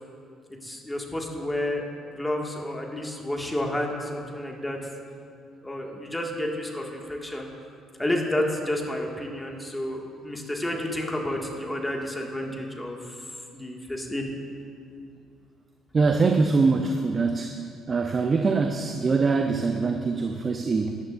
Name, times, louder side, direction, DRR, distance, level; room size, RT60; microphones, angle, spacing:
voice 1, 0.6-4.8 5.6-7.5 8.0-13.2 13.5-14.3, left 1 dB, 10° left, 0 dB, 2.0 m, -30 dB
voice 2, 15.9-17.6 17.9-21.0, right 4 dB, 40° right, 5 dB, 0.6 m, -23 dB
15.5 x 11.0 x 2.6 m, 2.4 s
hypercardioid pair, 60°, 0 cm